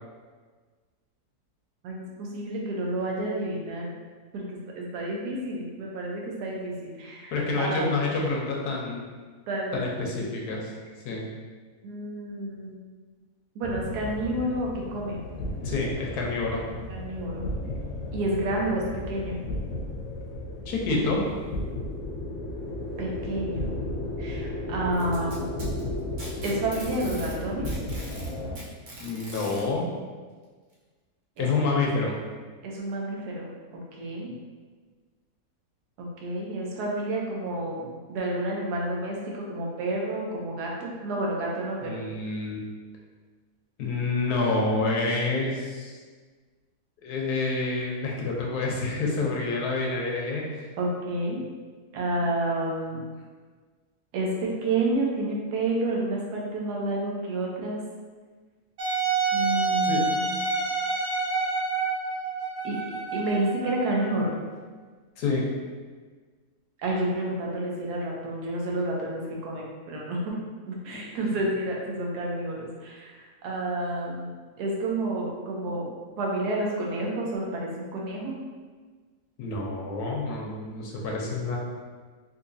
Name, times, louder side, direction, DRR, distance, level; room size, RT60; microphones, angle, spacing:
voice 1, 1.8-3.9 4.3-4.5 4.7-7.9 9.5-9.8 10.2-10.6 11.8-12.8 13.5-15.2 16.9-17.4 18.1-19.4 23.0-23.8 24.2-25.5 26.4-27.7 31.4-31.5 32.6-34.3 36.0-42.0 50.8-51.4 51.9-53.0 54.1-57.8 59.3-60.4 62.6-62.8 63.1-64.4 66.8-70.3 70.7-74.3 74.6-75.9 76.2-78.4, right 2 dB, 90° right, -2 dB, 1.2 m, -30 dB
voice 2, 7.3-9.1 9.7-10.7 11.0-11.3 14.3-14.4 15.6-16.6 20.7-21.2 29.0-29.9 31.4-32.1 41.8-42.6 43.8-46.0 47.0-50.5 59.9-60.0 65.2-65.4 70.9-71.1 75.7-75.8 79.4-81.6, left 3 dB, 90° left, -2 dB, 1.2 m, -28 dB
sound 1, 13.6-28.6, left 1 dB, 65° left, 0.8 m, -34 dB
Packing tape duct tape, 24.9-27.4 27.6-29.6 30.7-30.8 31.4-31.5 32.3-32.4, right 2 dB, 50° right, 0.6 m, -42 dB
Wind instrument woodwind instrument, 58.8-64.4, right 4 dB, 70° right, 1.4 m, -28 dB
3.9 x 2.6 x 2.6 m, 1.5 s
omnidirectional pair, 1.6 m